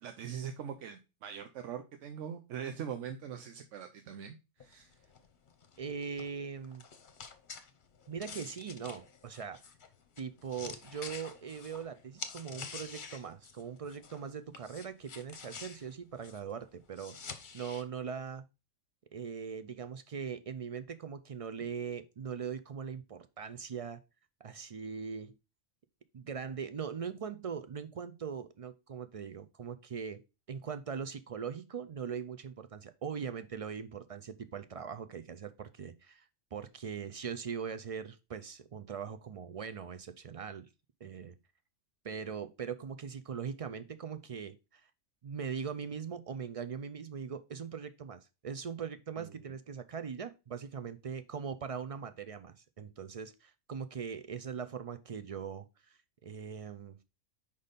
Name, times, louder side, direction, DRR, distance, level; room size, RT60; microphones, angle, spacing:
voice 1, 0.0-5.0 49.2-49.4, right 8 dB, 85° right, 1.0 m, -42 dB
sound 1, 4.6-14.3 14.5-17.8, left 5 dB, 45° left, 0.9 m, -48 dB
voice 2, 5.8-6.8 8.1-9.6 10.2-17.2 17.5-18.4 19.1-24.0 24.4-25.4 26.1-30.2 30.5-36.3 36.5-40.7 41.0-41.4 42.0-44.9 45.2-57.0, right 6 dB, 60° right, 0.3 m, -41 dB
5.2 x 4.1 x 5.1 m
omnidirectional pair, 1.2 m